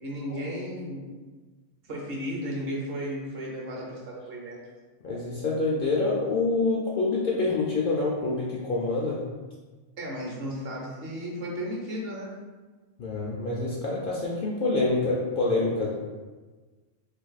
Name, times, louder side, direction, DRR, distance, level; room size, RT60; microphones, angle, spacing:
voice 1, 0.0-1.0 1.9-4.6 10.0-12.3, equal, 55° right, -2 dB, 0.8 m, -34 dB
voice 2, 5.0-9.2 13.0-16.0, left 3 dB, 60° left, -4 dB, 0.6 m, -26 dB
2.6 x 2.5 x 3.9 m, 1.3 s
omnidirectional pair, 1.3 m